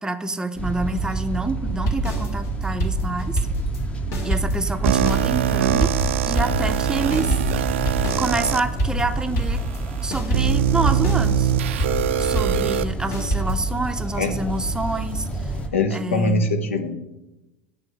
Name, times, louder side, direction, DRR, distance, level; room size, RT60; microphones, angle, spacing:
voice 1, 0.0-3.3 4.2-5.9 6.3-7.4 8.2-9.6 10.0-11.5 12.2-15.6 15.9-16.5, right 2 dB, 10° right, 9 dB, 0.6 m, -27 dB
sound 1, 0.6-15.7, right 3 dB, 15° left, 0.8 m, -29 dB
sound 2, 1.9-3.9 4.1-9.8 10.1-13.6, equal, 45° left, 1.7 m, -26 dB
sound 3, 4.8-8.6 9.3-9.4 10.3-12.8, right 11 dB, 70° right, 0.4 m, -23 dB
voice 2, 15.7-16.9, left 2 dB, 80° left, 7 dB, 0.9 m, -22 dB
8.9 x 3.5 x 5.5 m, 0.99 s
figure-of-eight pair, 80°, 7 cm